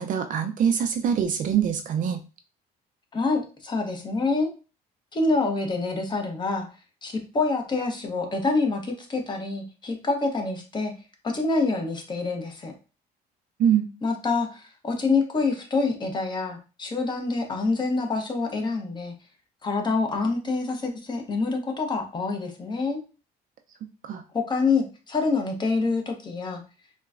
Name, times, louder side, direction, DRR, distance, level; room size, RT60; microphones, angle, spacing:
voice 1, 0.0-2.2 13.6-13.9 24.0-24.2, right 8 dB, 50° right, 7 dB, 0.4 m, -24 dB
voice 2, 3.1-4.5 5.1-6.7 7.0-10.9 11.2-12.7 14.0-19.1 19.6-23.0 24.3-26.6, left 3 dB, 25° left, 3 dB, 0.8 m, -26 dB
3.8 x 2.1 x 2.4 m, 0.33 s
cardioid pair, 110°, 17 cm